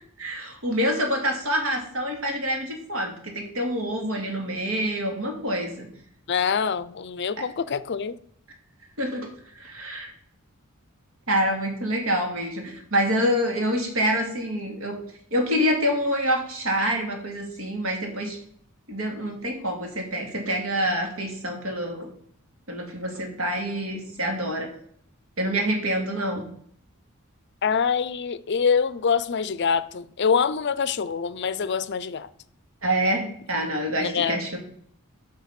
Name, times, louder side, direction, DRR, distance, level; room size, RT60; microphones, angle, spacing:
voice 1, 0.2-5.9 7.4-7.5 9.0-9.3 9.6-10.1 11.3-15.0 15.3-18.4 18.9-22.1 22.7-24.7 25.4-26.5 32.8-34.6, equal, 70° right, 2.3 m, -26 dB
voice 2, 6.3-8.2 27.6-32.3 34.0-34.4, left 6 dB, 55° left, 0.5 m, -25 dB
7.3 x 6.1 x 5.8 m
head